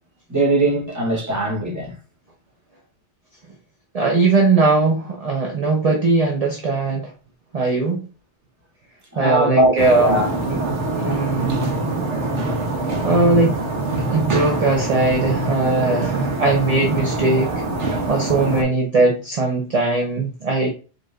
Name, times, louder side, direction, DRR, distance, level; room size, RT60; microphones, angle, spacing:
voice 1, 0.3-1.9 9.1-9.7 10.0-10.3, right 1 dB, 15° right, 1.1 m, -20 dB
voice 2, 3.9-7.1 7.5-8.0 9.2-10.6 11.0-11.6 13.0-13.6 14.1-17.5 18.1-20.7, right 3 dB, 35° right, 0.8 m, -19 dB
sound 1, 9.8-18.6, right 2 dB, 85° right, 1.2 m, -24 dB
4.7 x 3.1 x 2.4 m
omnidirectional pair, 1.2 m